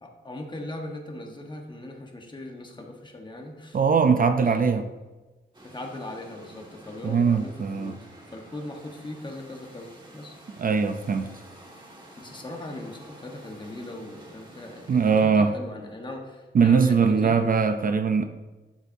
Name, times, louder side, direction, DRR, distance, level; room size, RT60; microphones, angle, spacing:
voice 1, 0.0-3.8 4.4-4.7 5.6-8.0 8.3-10.4 12.2-17.3, left 1 dB, 25° left, 2 dB, 1.2 m, -39 dB
voice 2, 3.7-4.9 7.0-7.9 10.6-11.3 14.9-15.5 16.5-18.3, right 5 dB, 45° right, 9 dB, 0.5 m, -21 dB
sound 1, 5.5-15.3, right 1 dB, 25° right, 1.7 m, -49 dB
11.5 x 6.6 x 2.7 m, 1.2 s
wide cardioid pair, 140°, 19 cm